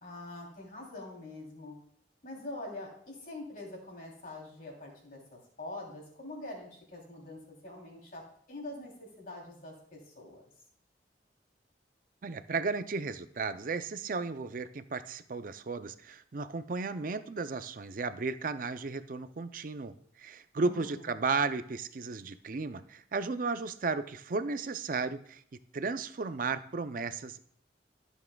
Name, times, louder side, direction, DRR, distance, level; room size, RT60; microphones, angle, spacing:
voice 1, 0.0-1.8 2.2-10.5 20.5-21.1, left 2 dB, 50° left, -1 dB, 3.1 m, -45 dB
voice 2, 12.2-25.4 25.7-27.5, right 4 dB, 50° right, 11 dB, 0.5 m, -34 dB
14.0 x 7.3 x 2.3 m, 0.62 s
head